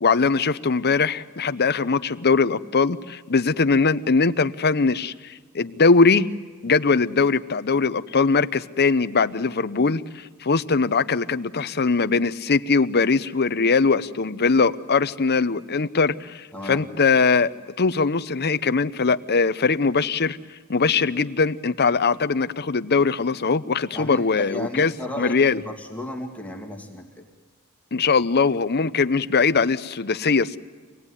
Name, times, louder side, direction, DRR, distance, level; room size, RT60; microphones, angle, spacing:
voice 1, 0.0-6.3 6.6-17.5 17.8-20.4 20.7-25.6 27.9-30.6, left 4 dB, 45° left, 12 dB, 0.8 m, -21 dB
voice 2, 23.9-25.4 25.7-27.2, left 1 dB, 5° left, 0 dB, 2.3 m, -34 dB
26.5 x 18.5 x 9.8 m, 1.4 s
head